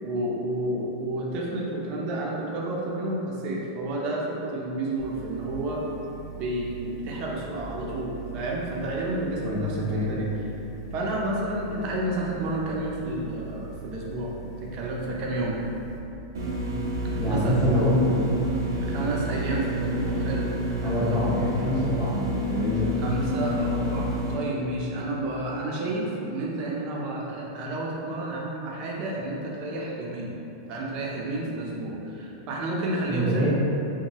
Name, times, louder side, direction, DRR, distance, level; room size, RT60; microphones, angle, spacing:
voice 1, 0.0-5.9 6.4-10.3 10.9-14.3 14.6-15.6 17.3-17.6 18.9-21.2 23.0-30.3 30.7-33.5, right 1 dB, 45° right, -3 dB, 0.5 m, -30 dB
sound 1, 5.0-16.0, right 5 dB, 90° left, 0.4 m, -41 dB
voice 2, 9.4-10.0 17.2-18.2 20.8-22.9 33.1-33.5, left 1 dB, 5° right, -14 dB, 1.0 m, -25 dB
sound 2, 16.3-24.3, equal, 90° right, 0.6 m, -29 dB
2.6 x 2.2 x 2.9 m, 2.8 s
hypercardioid pair, 120°, 2 cm